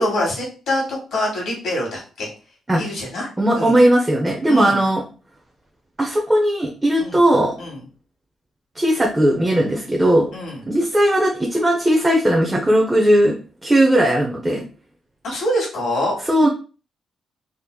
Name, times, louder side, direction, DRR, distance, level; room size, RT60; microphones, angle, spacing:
voice 1, 0.0-2.3 2.8-3.3 3.5-3.8 4.5-4.8 7.0-7.2 7.6-7.8 10.3-10.6 15.2-16.2, left 1 dB, 80° left, -3 dB, 1.7 m, -25 dB
voice 2, 3.4-5.0 6.0-7.5 8.8-10.3 10.7-13.3 13.6-14.6 16.3-16.5, right 1 dB, 10° right, -1 dB, 0.5 m, -17 dB
3.6 x 2.8 x 2.3 m, 0.36 s
wide cardioid pair, 165°, 0 cm